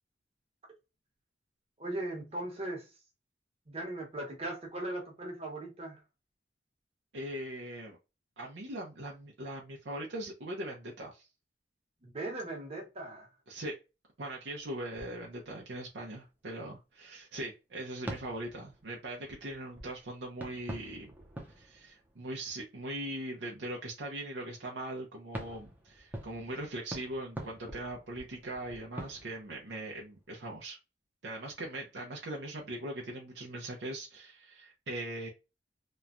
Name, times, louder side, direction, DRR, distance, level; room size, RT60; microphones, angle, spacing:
voice 1, 1.8-2.9 3.7-6.0 12.0-13.3, right 1 dB, 35° right, 1.1 m, -38 dB
voice 2, 7.1-8.0 8.4-11.3 13.5-13.8 14.2-21.2 21.6-30.8 31.2-35.3, right 1 dB, 80° right, 0.7 m, -40 dB
sound 1, 14.5-15.8 16.4-16.5 17.1-17.2 18.1-22.8 25.3-30.4, right 1 dB, 10° right, 0.6 m, -46 dB
3.0 x 2.2 x 2.4 m
head